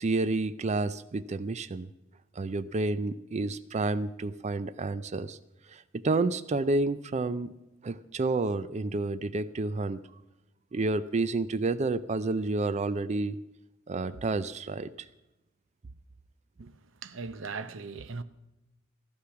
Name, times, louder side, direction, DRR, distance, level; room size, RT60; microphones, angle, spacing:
voice 1, 0.0-1.9 2.3-5.4 5.7-7.5 7.8-10.0 10.7-13.4 13.9-15.1, right 3 dB, 35° right, 0.4 m, -30 dB
voice 2, 17.0-18.2, right 4 dB, 65° right, 0.7 m, -38 dB
15.0 x 11.5 x 5.9 m
head